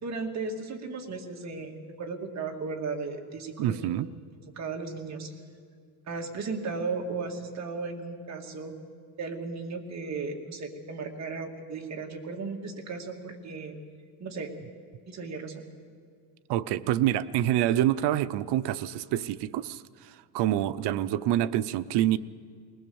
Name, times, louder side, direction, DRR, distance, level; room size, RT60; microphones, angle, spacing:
voice 1, 0.0-3.8 4.4-5.3 6.1-8.7 9.2-13.8 14.2-14.5 15.1-15.6, right 4 dB, 40° right, 3 dB, 2.2 m, -35 dB
voice 2, 3.6-4.1 16.5-22.2, right 12 dB, 75° right, 14 dB, 0.7 m, -27 dB
20.5 x 20.0 x 7.0 m, 2.1 s
cardioid pair, 135°, 41 cm